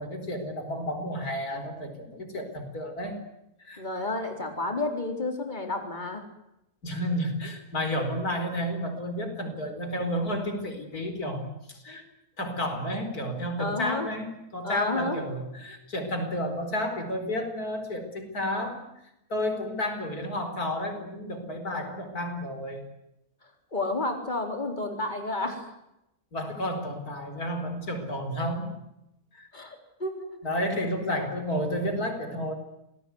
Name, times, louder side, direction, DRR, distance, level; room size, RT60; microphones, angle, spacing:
voice 1, 0.0-3.2 3.6-3.8 6.8-12.0 12.4-18.8 19.3-22.8 26.3-28.8 29.3-29.5 30.4-32.5, equal, 85° left, 7 dB, 5.0 m, -31 dB
voice 2, 3.8-6.2 13.6-14.1 14.6-15.2 23.7-25.7 29.5-30.3, left 2 dB, 30° left, 4 dB, 4.2 m, -31 dB
27.5 x 19.5 x 9.6 m, 0.86 s
omnidirectional pair, 1.6 m